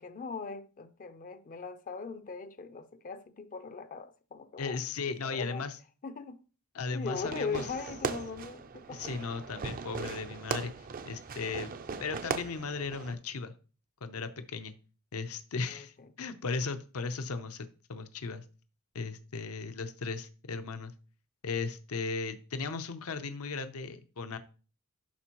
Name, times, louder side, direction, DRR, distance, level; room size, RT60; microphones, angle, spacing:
voice 1, 0.0-4.8 5.2-5.7 6.0-6.4 6.9-9.0 15.6-15.9, left 4 dB, 40° left, 0.5 m, -40 dB
voice 2, 4.6-5.8 6.7-7.7 8.9-10.7 11.1-11.7 12.0-13.5 14.0-14.7 15.1-18.4 18.9-20.9 21.4-24.4, left 4 dB, 80° left, 0.7 m, -36 dB
Fireworks, 7.1-13.1, right 5 dB, 40° right, 0.4 m, -39 dB
11.5 x 4.4 x 3.0 m
head